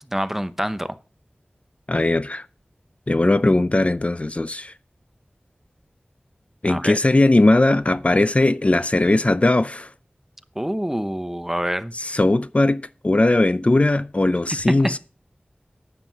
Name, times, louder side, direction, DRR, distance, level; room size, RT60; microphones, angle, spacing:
voice 1, 0.1-0.9 6.6-7.0 10.6-11.9 14.7-14.8, equal, 10° right, 0.8 m, -26 dB
voice 2, 1.9-2.5 3.1-4.7 6.6-9.9 11.9-15.0, left 2 dB, 40° left, 0.5 m, -19 dB
9.7 x 7.5 x 5.9 m
wide cardioid pair, 60°, 3 cm